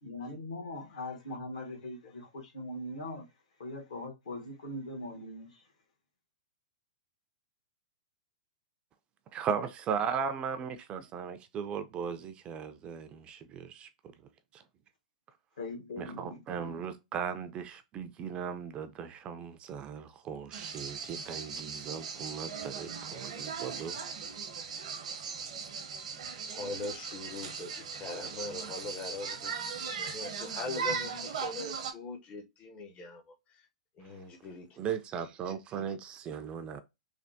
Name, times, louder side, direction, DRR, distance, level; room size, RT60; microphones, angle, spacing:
voice 1, 0.0-3.3 3.6-5.6 15.6-16.4, left 1 dB, 70° left, 1.3 m, -41 dB
voice 2, 9.3-13.9 14.5-14.6 16.0-24.0 28.2-28.5 34.8-36.8, right 7 dB, 30° right, 0.4 m, -37 dB
sound 1, 20.5-31.9, right 6 dB, 65° right, 0.7 m, -39 dB
voice 3, 26.5-29.5 29.9-33.2 34.0-34.7, left 3 dB, 30° left, 0.6 m, -41 dB
3.3 x 2.1 x 2.6 m
hypercardioid pair, 115°, 4 cm